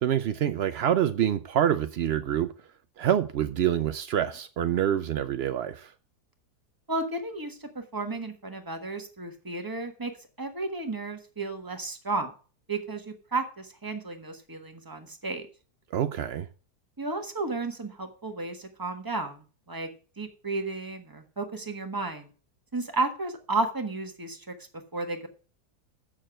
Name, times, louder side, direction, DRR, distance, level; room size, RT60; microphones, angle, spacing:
voice 1, 0.0-2.5 3.0-5.9 15.9-16.5, right 10 dB, 80° right, 0.5 m, -26 dB
voice 2, 6.9-10.1 10.4-12.3 12.7-15.5 17.0-19.4 19.7-19.9 20.2-22.3 22.7-25.3, right 3 dB, 15° right, 1.2 m, -33 dB
7.4 x 6.7 x 7.5 m
omnidirectional pair, 1.7 m